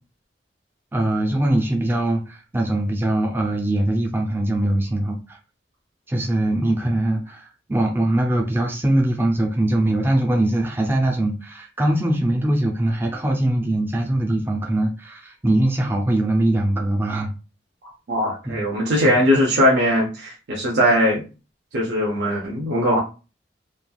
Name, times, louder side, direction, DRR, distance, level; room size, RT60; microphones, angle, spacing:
voice 1, 0.9-5.4 6.1-17.3 18.4-18.7 19.0-19.1, right 1 dB, 15° right, 1 dB, 0.4 m, -22 dB
voice 2, 18.1-21.2 21.7-23.0, equal, 75° right, -3 dB, 0.7 m, -20 dB
3.1 x 2.3 x 2.3 m, 0.32 s
head